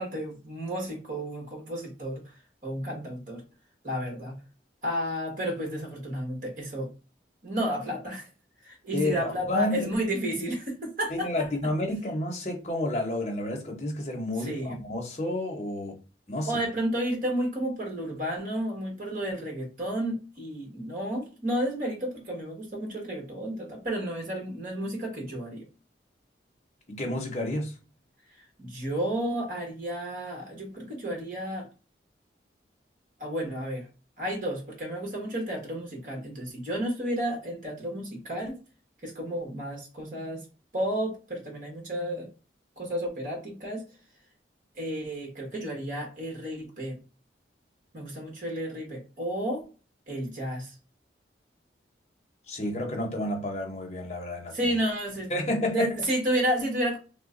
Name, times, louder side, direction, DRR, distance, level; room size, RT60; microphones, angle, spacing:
voice 1, 0.0-2.2 2.6-3.4 3.8-4.4 4.8-6.9 7.4-8.3 8.6-11.3 14.4-14.8 16.4-25.7 28.6-31.7 33.2-33.9 34.2-38.6 39.0-40.4 40.7-42.3 42.8-43.8 44.7-47.0 47.9-49.6 50.1-50.7 54.5-55.4 55.7-57.0, right 1 dB, 45° right, 1.5 m, -31 dB
voice 2, 8.9-9.9 11.1-16.0 16.3-16.6 26.9-27.7 52.5-54.7 55.3-55.9, left 1 dB, 40° left, 0.9 m, -30 dB
3.0 x 2.2 x 3.7 m
head